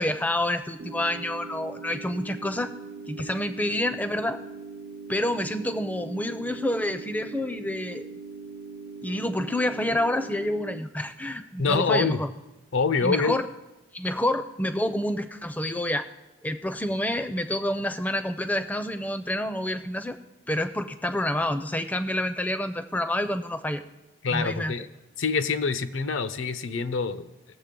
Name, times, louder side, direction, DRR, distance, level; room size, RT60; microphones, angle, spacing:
voice 1, 0.0-2.7 3.1-4.4 5.1-8.0 9.0-12.3 13.0-13.4 13.9-16.1 16.4-20.2 20.5-23.8 24.3-24.7, left 1 dB, 10° left, 11 dB, 0.4 m, -28 dB
sound 1, 0.8-10.8, right 4 dB, 80° right, 0.7 m, -41 dB
voice 2, 11.6-12.2 12.7-13.4 24.2-24.9 25.2-27.3, left 4 dB, 80° left, 12 dB, 0.6 m, -25 dB
18.5 x 7.2 x 3.7 m, 1.0 s
head